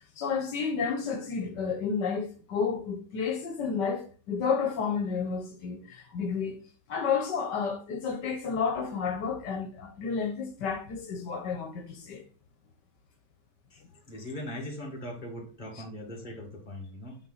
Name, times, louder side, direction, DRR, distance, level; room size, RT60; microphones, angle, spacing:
voice 1, 0.2-6.6 6.9-12.2 15.7-15.8, left 6 dB, 80° left, 1.6 m, -31 dB
voice 2, 14.1-17.2, left 1 dB, 30° left, 2.0 m, -40 dB
8.5 x 4.5 x 4.0 m
omnidirectional pair, 1.9 m